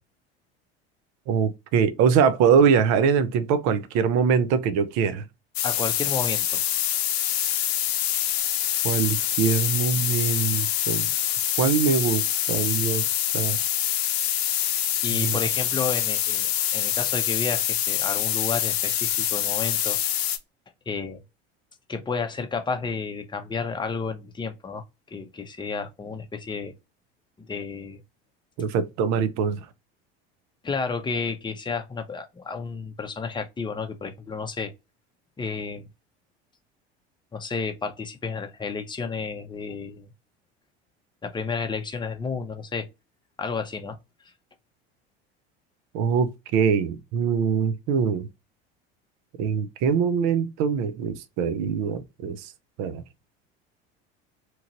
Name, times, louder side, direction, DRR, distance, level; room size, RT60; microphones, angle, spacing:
voice 1, 1.3-5.2 8.8-11.1 11.6-13.1 13.3-13.6 15.1-15.4 28.6-29.6 45.9-48.3 49.4-52.5 52.8-53.0, right 6 dB, 60° right, 0.6 m, -23 dB
sound 1, 5.6-20.4, left 11 dB, 75° left, 0.6 m, -25 dB
voice 2, 5.6-6.6 15.0-20.0 20.9-21.2 21.9-24.8 25.1-26.7 27.4-28.0 30.6-34.7 35.4-35.9 37.3-40.1 41.2-42.9 43.4-44.0, left 5 dB, 15° left, 0.7 m, -31 dB
3.0 x 2.4 x 2.9 m
hypercardioid pair, 80°, 31 cm